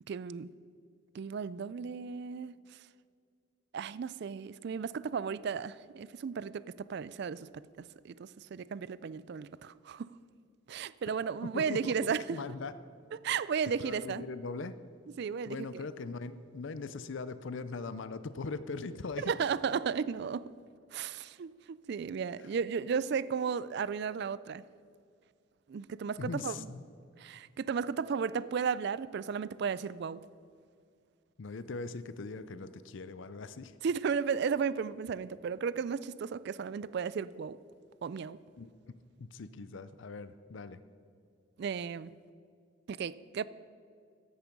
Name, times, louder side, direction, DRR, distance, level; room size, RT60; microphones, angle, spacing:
voice 1, 0.1-0.5 1.1-2.5 3.7-10.1 10.7-12.4 13.2-14.3 15.2-15.9 19.2-20.4 20.9-24.6 25.7-26.7 27.2-30.2 33.8-37.6 38.0-38.4 41.6-42.1 42.9-43.4, right 6 dB, 55° right, 0.3 m, -34 dB
voice 2, 11.4-12.7 13.8-14.8 15.4-19.4 22.4-22.5 26.2-26.8 31.4-33.7 38.6-38.9 39.2-40.8, left 4 dB, 65° left, 0.5 m, -40 dB
14.5 x 10.5 x 5.2 m
head